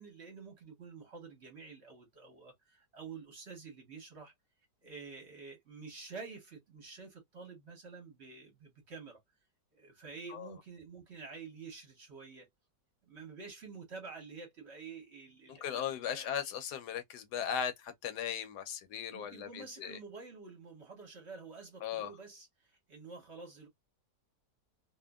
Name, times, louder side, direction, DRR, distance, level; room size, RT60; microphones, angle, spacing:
voice 1, 0.0-4.3 4.8-9.2 9.7-12.5 13.1-16.5 19.1-23.7, right 4 dB, 45° right, 1.0 m, -49 dB
voice 2, 15.5-20.0 21.8-22.1, left 8 dB, 75° left, 1.1 m, -38 dB
2.7 x 2.4 x 2.2 m
omnidirectional pair, 1.9 m